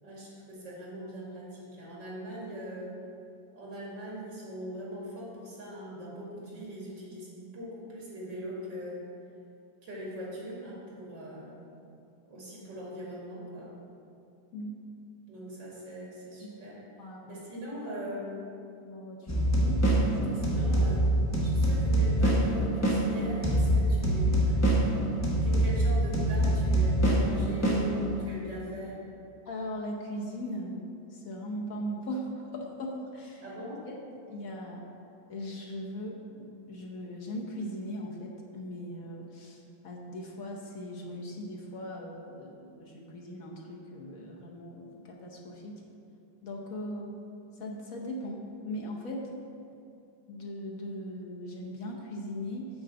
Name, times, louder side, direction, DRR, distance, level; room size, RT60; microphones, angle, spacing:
voice 1, 0.0-3.0 3.5-9.0 9.8-11.6 12.3-13.7 15.3-16.8 17.3-18.4 20.3-21.1 21.4-24.6 25.4-29.0 33.4-33.9, equal, 90° right, -5 dB, 2.8 m, -41 dB
voice 2, 17.0-17.4 18.8-20.4 29.5-33.4 34.3-34.9 35.3-45.8 46.4-47.2 47.6-49.3 50.3-52.7, equal, 55° left, -1 dB, 1.2 m, -39 dB
sound 1, 19.3-28.4, right 1 dB, 20° left, 0.4 m, -25 dB
8.7 x 3.9 x 6.8 m, 2.6 s
omnidirectional pair, 1.9 m